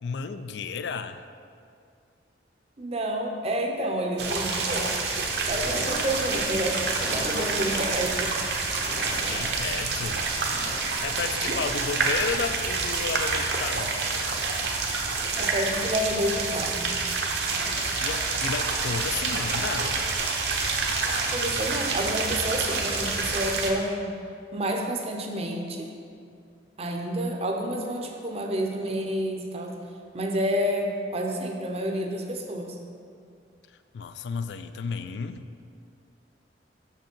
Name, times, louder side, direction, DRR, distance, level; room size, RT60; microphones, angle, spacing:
voice 1, 0.0-1.3 9.3-10.3 11.0-13.9 17.5-20.0 33.9-35.4, left 5 dB, 70° left, 11 dB, 0.3 m, -33 dB
voice 2, 2.8-5.0 5.5-8.3 15.4-17.0 21.3-24.2 24.5-25.9 26.8-29.8 30.1-32.8, equal, 35° right, 3 dB, 0.7 m, -29 dB
sound 1, 4.2-23.7, right 4 dB, 65° right, 0.9 m, -28 dB
sound 2, 5.6-15.9, left 1 dB, 45° left, 0.8 m, -42 dB
6.4 x 5.9 x 4.5 m, 2.4 s
head